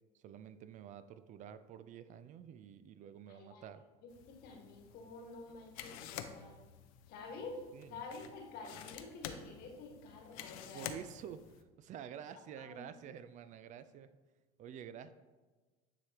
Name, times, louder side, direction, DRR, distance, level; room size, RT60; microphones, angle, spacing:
voice 1, 0.1-3.8 7.7-8.3 10.7-14.1 14.6-15.1, right 9 dB, 45° right, 12 dB, 0.4 m, -49 dB
voice 2, 3.3-3.6 4.4-6.5 7.1-7.6 7.9-10.9 12.6-12.9, left 3 dB, 60° left, 1 dB, 1.5 m, -49 dB
sound 1, 4.1-11.6, left 9 dB, 80° left, 0.5 m, -50 dB
9.7 x 3.3 x 2.9 m, 1.3 s
supercardioid pair, 95°, 18 cm